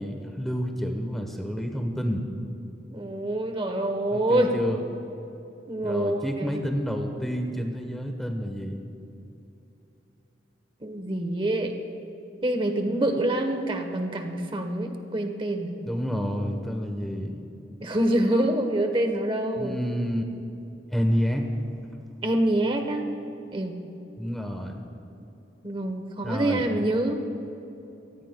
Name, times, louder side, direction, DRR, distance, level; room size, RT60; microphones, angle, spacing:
voice 1, 0.0-2.3 4.1-4.8 5.8-8.8 15.8-17.3 19.6-20.2 20.9-21.5 24.2-24.8 26.2-26.6, equal, ahead, 3 dB, 1.0 m, -29 dB
voice 2, 2.9-4.5 5.7-6.6 10.8-11.7 12.4-15.7 17.8-19.8 22.2-23.1 23.5-23.7 25.6-27.2, right 1 dB, 30° right, 5 dB, 1.0 m, -26 dB
25.0 x 17.0 x 2.2 m, 2.9 s
head